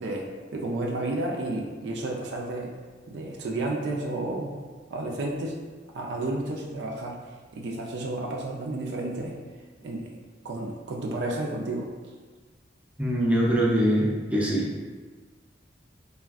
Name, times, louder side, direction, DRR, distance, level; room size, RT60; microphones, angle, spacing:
voice 1, 0.0-2.7 3.1-4.6 4.9-5.5 5.9-7.2 7.5-9.4 9.8-10.1 10.4-11.9, right 2 dB, 65° right, 0 dB, 0.4 m, -31 dB
voice 2, 13.0-14.7, equal, 10° right, -5 dB, 0.5 m, -23 dB
3.3 x 2.4 x 2.4 m, 1.4 s
head